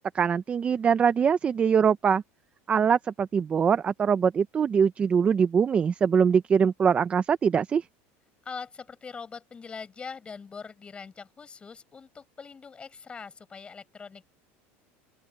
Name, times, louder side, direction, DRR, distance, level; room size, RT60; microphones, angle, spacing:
voice 1, 0.1-2.2 2.7-7.8, right 7 dB, 20° right, 0.6 m, -23 dB
voice 2, 8.4-14.3, left 5 dB, 15° left, 7.7 m, -42 dB
open air
cardioid pair, 155°, 6 cm